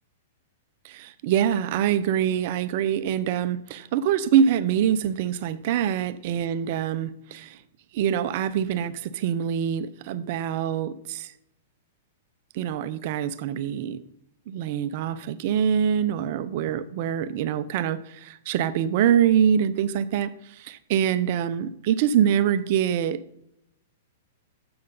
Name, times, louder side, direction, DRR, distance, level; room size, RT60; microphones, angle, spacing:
voice 1, 0.8-7.6 7.9-11.3 12.5-14.0 14.5-23.2, right 9 dB, 55° right, 15 dB, 0.7 m, -24 dB
12.5 x 7.8 x 3.9 m, 0.80 s
hypercardioid pair, 115°, 0 cm